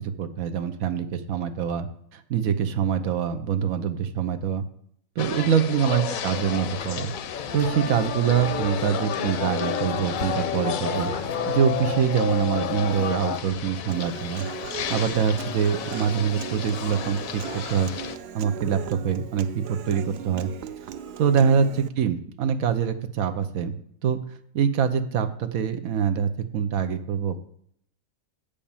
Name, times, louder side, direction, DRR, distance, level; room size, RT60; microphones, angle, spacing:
voice 1, 0.0-1.9 2.1-4.6 5.2-7.1 7.5-11.1 11.5-14.5 14.9-17.9 18.3-20.5 21.2-23.8 24.0-24.2 24.5-27.4, right 7 dB, 90° right, 9 dB, 1.2 m, -24 dB
sound 1, 5.2-18.2, left 9 dB, 85° left, 1.0 m, -34 dB
sound 2, 6.5-13.4, left 6 dB, 50° left, 0.6 m, -30 dB
Human voice / Acoustic guitar, 13.9-21.9, right 8 dB, 65° right, 0.6 m, -38 dB
8.6 x 5.2 x 7.1 m, 0.67 s
omnidirectional pair, 1.4 m